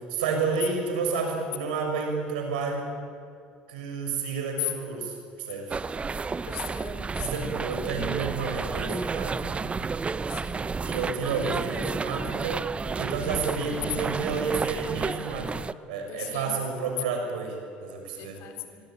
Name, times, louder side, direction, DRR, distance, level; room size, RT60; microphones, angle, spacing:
voice 1, 0.0-2.9 3.7-5.8 7.2-9.8 10.8-12.6 12.9-15.5 15.9-18.3, right 4 dB, 80° right, 3 dB, 6.5 m, -30 dB
sound 1, 5.7-15.7, right 4 dB, 25° right, 0.8 m, -31 dB
voice 2, 6.0-7.6 10.3-10.7 16.1-16.7 18.2-18.8, left 13 dB, 65° left, 6 dB, 3.9 m, -38 dB
25.0 x 23.0 x 9.1 m, 2.5 s
hypercardioid pair, 75°, 5 cm